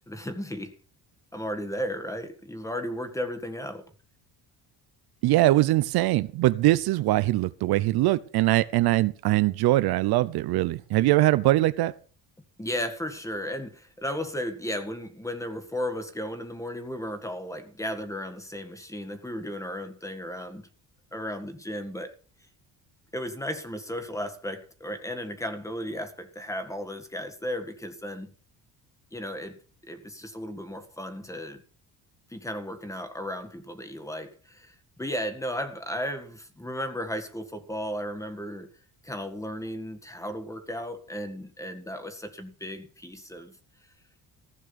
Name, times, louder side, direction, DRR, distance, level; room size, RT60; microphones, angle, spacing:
voice 1, 0.1-0.7 1.3-3.8 12.6-20.7 21.1-22.1 23.1-28.3 29.1-31.6 32.3-38.7 39.0-43.6, equal, 10° left, 1.8 m, -35 dB
voice 2, 5.2-11.9, right 17 dB, 80° right, 0.8 m, -22 dB
15.0 x 6.3 x 6.9 m
cardioid pair, 125°, 38 cm